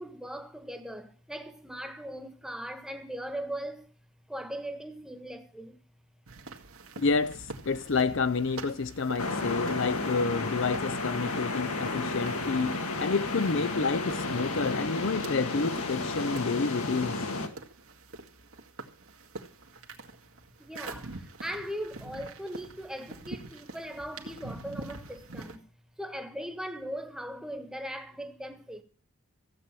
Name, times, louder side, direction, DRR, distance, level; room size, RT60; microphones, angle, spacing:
voice 1, 0.0-3.9 4.3-5.8 20.6-25.6 26.0-28.8, equal, ahead, 1.4 m, -39 dB
sound 1, 6.3-25.6, right 2 dB, 75° right, 2.1 m, -46 dB
voice 2, 7.0-17.2, left 4 dB, 55° left, 0.6 m, -29 dB
sound 2, 9.2-17.5, left 3 dB, 85° left, 2.0 m, -32 dB
15.5 x 8.4 x 7.5 m
head